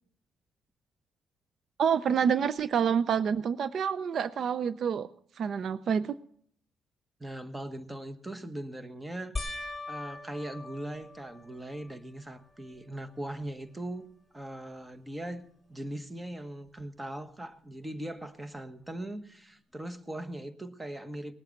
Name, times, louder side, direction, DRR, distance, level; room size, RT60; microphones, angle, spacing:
voice 1, 1.8-5.1 5.4-6.2, right 7 dB, 60° right, 16 dB, 0.5 m, -27 dB
voice 2, 7.2-15.4 15.7-21.3, right 1 dB, 15° right, 10 dB, 1.3 m, -40 dB
sound 1, 9.4-12.0 12.6-13.1 13.5-13.6 16.8-16.9, left 2 dB, 5° left, 2.0 m, -41 dB
19.5 x 8.3 x 6.6 m, 0.64 s
cardioid pair, 90°, 0 cm